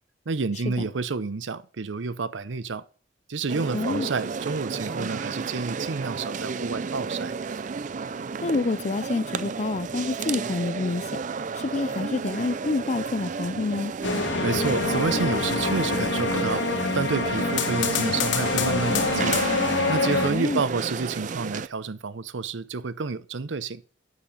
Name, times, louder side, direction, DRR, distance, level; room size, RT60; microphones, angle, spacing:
voice 1, 0.3-2.8 3.3-7.3 14.4-16.6 16.9-19.4 19.9-23.8, right 4 dB, 90° right, 0.7 m, -29 dB
sound 1, 3.5-21.7, right 5 dB, 40° right, 0.4 m, -32 dB
voice 2, 3.7-4.1 8.4-11.0 11.6-13.9 20.3-20.6, left 3 dB, 40° left, 0.5 m, -28 dB
sound 2, 14.0-20.3, left 3 dB, 90° left, 1.8 m, -25 dB
9.8 x 6.9 x 5.4 m
head